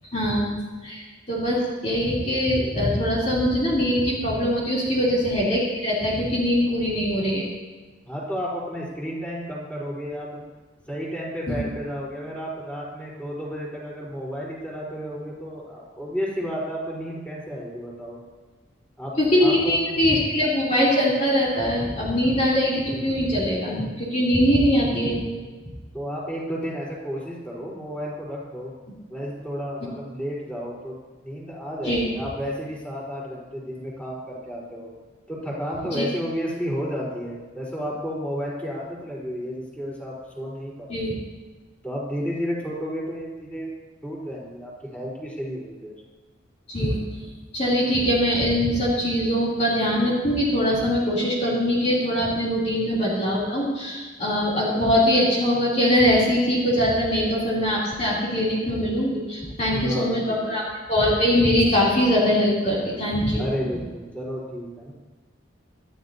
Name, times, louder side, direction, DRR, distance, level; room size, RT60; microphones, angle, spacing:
voice 1, 0.1-0.6 0.8-7.4 11.5-11.6 19.2-25.2 31.8-32.1 35.9-36.0 40.9-41.1 46.7-47.0 47.5-63.4, equal, 35° left, -7 dB, 3.2 m, -22 dB
voice 2, 8.1-10.4 10.9-18.2 19.0-19.1 19.4-20.0 25.3-25.5 25.9-28.7 29.1-30.9 31.2-34.9 35.3-41.1 41.8-43.7 44.0-45.9 59.7-60.5 63.4-64.9, equal, 5° left, -6 dB, 4.1 m, -32 dB
24.5 x 13.0 x 2.8 m, 1.3 s
head